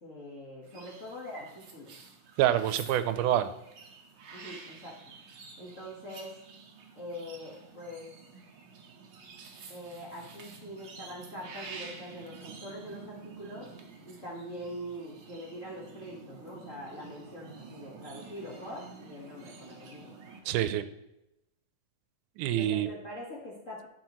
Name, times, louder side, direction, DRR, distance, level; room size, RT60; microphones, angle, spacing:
voice 1, 0.0-2.0 4.3-5.0 5.6-6.3 6.9-8.1 9.7-13.7 14.0-20.1 22.6-23.9, equal, 40° left, -5 dB, 1.1 m, -43 dB
sound 1, 0.6-20.4, right 5 dB, 70° right, 1.0 m, -49 dB
voice 2, 2.4-3.5 20.5-20.9 22.4-22.9, right 12 dB, 90° right, 12 dB, 2.1 m, -26 dB
12.0 x 6.0 x 3.0 m, 0.88 s
omnidirectional pair, 3.6 m